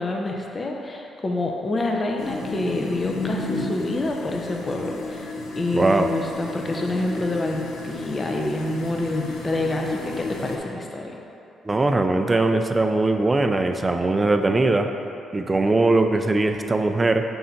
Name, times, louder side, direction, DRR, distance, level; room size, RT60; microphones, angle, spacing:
voice 1, 0.0-5.3 5.5-11.2, left 2 dB, 30° left, 1 dB, 0.7 m, -27 dB
sound 1, 2.2-10.6, left 3 dB, 75° left, 0.7 m, -32 dB
voice 2, 5.7-6.1 11.6-14.9 15.3-17.2, right 2 dB, 20° right, 6 dB, 0.4 m, -20 dB
5.4 x 3.6 x 5.8 m, 2.8 s
cardioid pair, 90°, 0 cm